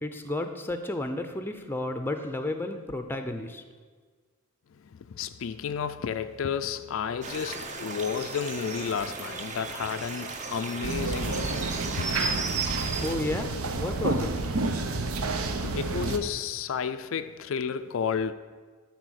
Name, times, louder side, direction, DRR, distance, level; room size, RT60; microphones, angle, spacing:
voice 1, 0.0-3.6 13.0-14.3, left 2 dB, 10° left, 0.5 m, -32 dB
voice 2, 4.7-11.7 12.0-12.3 15.6-18.3, left 7 dB, 60° left, 0.3 m, -32 dB
sound 1, 7.2-13.2, right 4 dB, 30° right, 0.7 m, -35 dB
sound 2, 10.8-16.2, right 3 dB, 75° right, 0.8 m, -30 dB
12.5 x 4.3 x 6.4 m
head